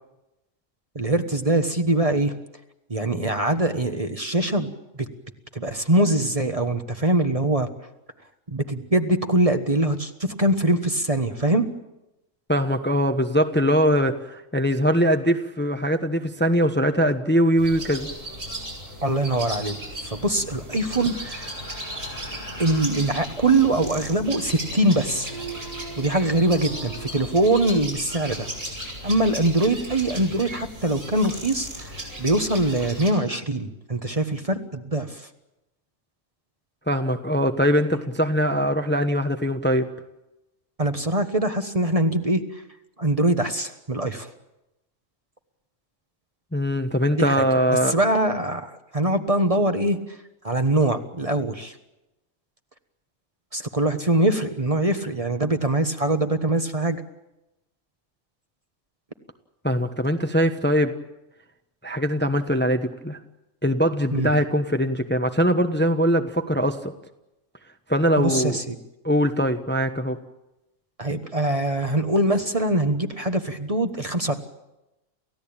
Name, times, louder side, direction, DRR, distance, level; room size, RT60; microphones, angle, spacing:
voice 1, 0.9-2.3 2.9-4.7 5.0-5.1 5.5-7.7 8.5-11.7 19.0-19.8 20.0-21.5 22.6-25.3 26.0-28.5 29.0-31.9 32.2-35.2 40.8-42.4 43.0-44.3 47.1-50.0 50.4-51.7 53.5-57.0 64.1-64.3 68.2-68.7 71.0-74.3, right 1 dB, 30° right, 7 dB, 1.3 m, -23 dB
voice 2, 12.5-18.1 36.9-39.9 46.5-47.9 59.6-60.9 61.8-63.2 63.6-66.9 67.9-68.6 69.0-70.2, equal, 10° left, 7 dB, 1.0 m, -22 dB
sound 1, 17.6-33.1, right 1 dB, 70° right, 7.8 m, -36 dB
sound 2, 20.4-31.8 32.2-32.3, right 1 dB, 50° left, 2.2 m, -43 dB
29.0 x 15.5 x 8.9 m, 0.94 s
omnidirectional pair, 1.3 m